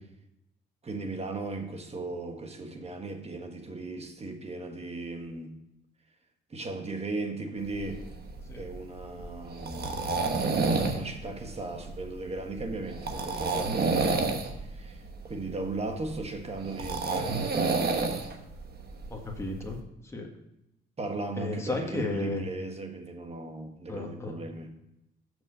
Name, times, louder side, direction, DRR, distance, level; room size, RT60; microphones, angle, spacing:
voice 1, 0.8-5.6 6.5-8.1 8.5-10.3 10.9-18.1 21.0-24.7, right 3 dB, 30° right, 1.3 m, -37 dB
sound 1, 7.6-19.8, right 3 dB, 50° right, 1.2 m, -30 dB
voice 2, 19.1-20.3 21.4-22.4 23.9-24.3, left 3 dB, 15° left, 1.5 m, -34 dB
6.3 x 6.1 x 6.8 m
cardioid pair, 90°, 20 cm